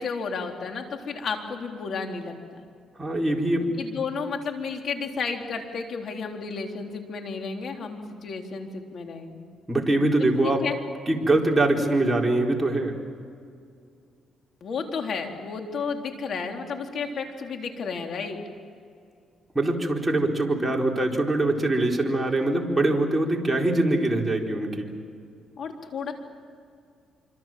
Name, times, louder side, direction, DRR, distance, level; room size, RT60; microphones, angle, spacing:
voice 1, 0.0-2.6 3.8-9.4 10.4-10.8 14.6-18.4 25.6-26.1, left 5 dB, 60° left, 3 dB, 3.7 m, -32 dB
voice 2, 3.0-3.7 3.9-4.0 9.7-10.6 11.1-12.9 19.5-24.9, right 2 dB, 15° right, 0 dB, 4.3 m, -23 dB
26.0 x 25.5 x 7.7 m, 2.3 s
cardioid pair, 90°, 0 cm